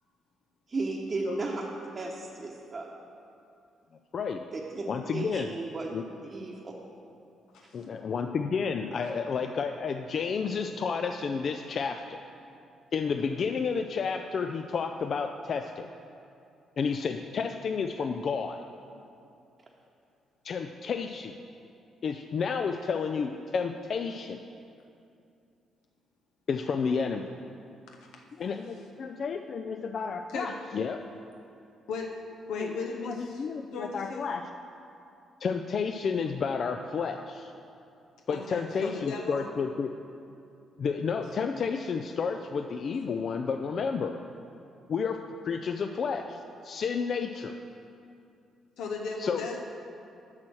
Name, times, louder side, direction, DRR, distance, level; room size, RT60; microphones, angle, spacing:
voice 1, 0.7-1.6 1.9-2.9 4.5-4.8 5.1-5.9 6.2-6.7, right 3 dB, 35° right, -3 dB, 0.9 m, -34 dB
voice 2, 4.9-5.5 5.9-6.0 7.7-12.2 12.9-15.9 16.8-18.6 20.4-21.3 22.0-24.4 26.5-27.3 28.4-31.0 32.6-32.7 33.0-34.5 35.4-37.5 38.3-39.9 40.8-44.2 44.9-47.5 49.2-49.5, left 5 dB, 55° left, 6 dB, 0.3 m, -31 dB
voice 3, 32.5-33.4 33.7-34.2 38.3-39.5 48.8-49.6, left 4 dB, 85° left, 1 dB, 0.7 m, -36 dB
7.3 x 6.3 x 6.1 m, 2.6 s
cardioid pair, 90°, 0 cm